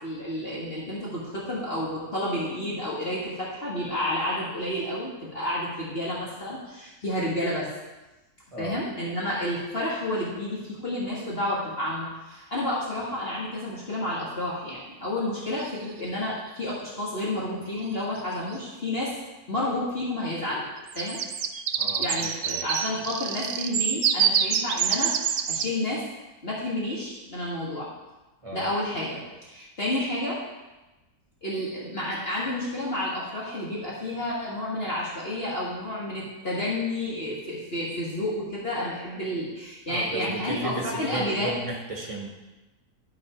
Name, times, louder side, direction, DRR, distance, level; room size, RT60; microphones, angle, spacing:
voice 1, 0.0-7.7 8.6-19.2 19.5-20.7 20.9-21.2 22.0-26.0 26.4-27.9 28.5-30.4 31.4-41.5, left 1 dB, 40° left, -7 dB, 1.9 m, -30 dB
sound 1, 11.2-11.3 15.6-16.2 17.8-17.9 18.2-18.5 20.8-25.7, right 7 dB, 80° right, 0.5 m, -26 dB
voice 2, 39.9-42.3, right 2 dB, 20° right, -1 dB, 1.5 m, -33 dB
12.0 x 4.8 x 4.9 m, 1.1 s
omnidirectional pair, 1.6 m